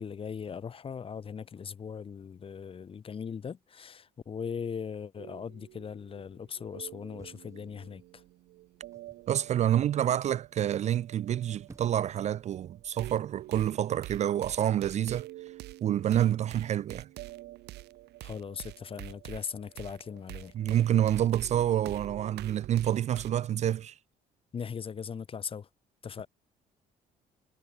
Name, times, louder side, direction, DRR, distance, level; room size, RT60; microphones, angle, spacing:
voice 1, 0.0-8.0 18.2-20.5 24.5-25.7 26.0-26.3, left 6 dB, 35° left, 1.1 m, -39 dB
sound 1, 5.2-23.3, right 17 dB, 80° right, 2.8 m, -47 dB
sound 2, 7.1-8.2 8.9-9.3 11.3-12.2 13.1-13.4, right 3 dB, 15° right, 4.5 m, -56 dB
voice 2, 9.3-15.3 15.8-17.1 20.5-24.0, right 11 dB, 45° right, 0.4 m, -28 dB
cardioid pair, 110°, 17 cm